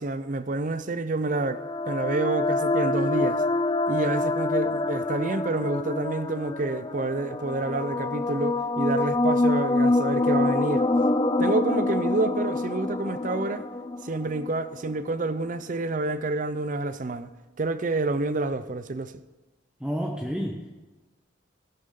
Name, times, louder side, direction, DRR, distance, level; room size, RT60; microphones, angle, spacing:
voice 1, 0.0-3.4 3.9-10.9 11.4-13.7 14.0-17.3 17.6-19.2, right 2 dB, 40° right, 0.6 m, -28 dB
sound 1, 1.3-15.0, left 2 dB, 25° left, 0.5 m, -26 dB
voice 2, 19.8-20.7, equal, 5° right, 0.8 m, -30 dB
15.5 x 12.0 x 3.8 m
head